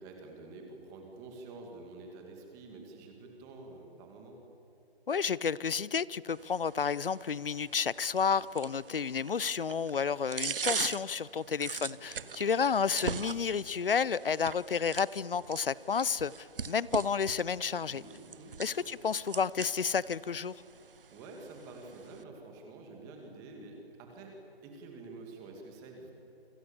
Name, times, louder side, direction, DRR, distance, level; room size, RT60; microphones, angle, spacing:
voice 1, 0.0-4.4 11.7-12.9 17.8-18.9 21.1-24.4 24.6-26.1, right 3 dB, 10° right, 2 dB, 2.3 m, -49 dB
voice 2, 5.1-18.0 18.6-20.6, left 6 dB, 60° left, 21 dB, 0.8 m, -31 dB
sound 1, 6.3-22.2, right 6 dB, 60° right, 1.0 m, -42 dB
28.0 x 26.5 x 7.2 m, 3.0 s
hypercardioid pair, 165°, 32 cm